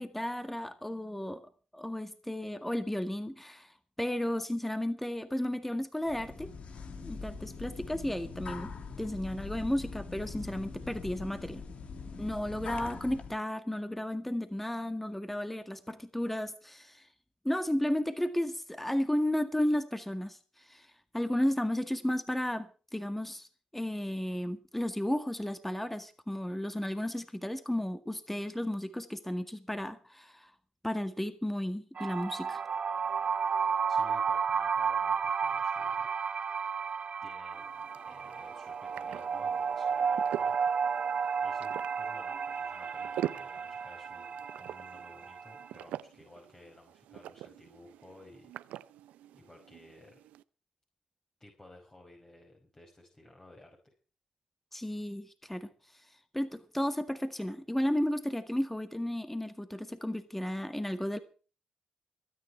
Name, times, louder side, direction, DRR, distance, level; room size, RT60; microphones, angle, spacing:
voice 1, 0.0-1.4 1.7-6.5 7.0-8.7 9.0-11.6 12.2-17.1 17.4-23.5 23.7-30.5 30.8-32.6 54.7-55.7 56.3-61.2, left 1 dB, 10° left, 9 dB, 1.9 m, -33 dB
sound 1, 6.0-13.3, left 4 dB, 60° left, 2.6 m, -42 dB
sound 2, 32.0-45.7, right 6 dB, 55° right, 0.9 m, -32 dB
voice 2, 33.9-36.1 37.2-40.6 41.4-48.5 49.3-50.2 51.4-53.8, left 1 dB, 25° left, 2 dB, 5.3 m, -55 dB
sound 3, 37.5-50.4, right 13 dB, 80° right, 0.6 m, -45 dB
23.0 x 9.8 x 4.5 m, 0.37 s
supercardioid pair, 50°, 2 cm